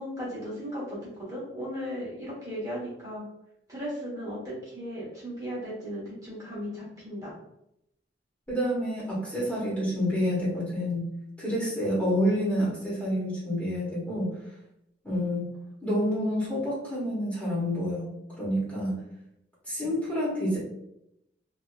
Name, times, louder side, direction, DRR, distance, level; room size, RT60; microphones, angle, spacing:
voice 1, 0.0-3.2 3.7-7.3, equal, 20° right, -7 dB, 1.2 m, -36 dB
voice 2, 8.5-11.1 11.4-14.4 15.0-15.5 15.8-18.1 18.4-19.0 19.6-20.6, equal, 10° left, -8 dB, 1.2 m, -28 dB
3.0 x 2.9 x 2.3 m, 0.80 s
head